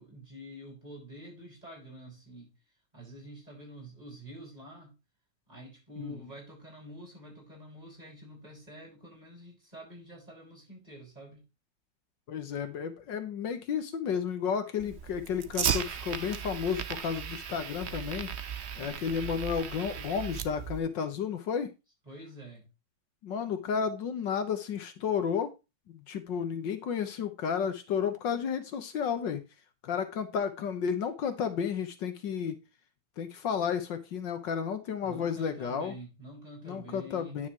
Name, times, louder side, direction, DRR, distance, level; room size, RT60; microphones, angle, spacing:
voice 1, 0.0-2.5 2.9-5.0 5.5-11.5 22.1-22.7 35.0-37.4, right 1 dB, 20° right, 6.5 m, -47 dB
voice 2, 12.3-18.3 18.8-21.7 23.2-25.5 25.9-29.4 29.8-32.6 33.2-36.0 36.6-37.5, left 7 dB, 80° left, 1.8 m, -32 dB
Fire, 14.8-20.8, right 8 dB, 50° right, 0.8 m, -36 dB
9.9 x 8.0 x 3.0 m
omnidirectional pair, 2.0 m